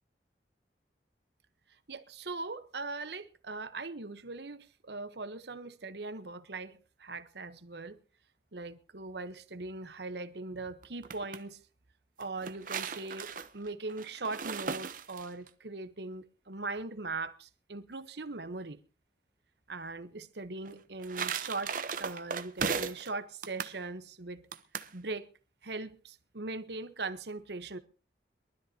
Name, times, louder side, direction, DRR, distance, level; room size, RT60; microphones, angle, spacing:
voice 1, 1.9-8.0 8.5-11.6 12.2-18.8 19.7-24.5 24.9-25.3 25.6-27.8, right 3 dB, 70° right, 1.1 m, -40 dB
sound 1, 10.8-11.4 12.2-15.5 20.6-23.1 23.4-23.8 24.5-24.9, right 6 dB, 50° right, 0.8 m, -37 dB
23.0 x 13.0 x 2.8 m
head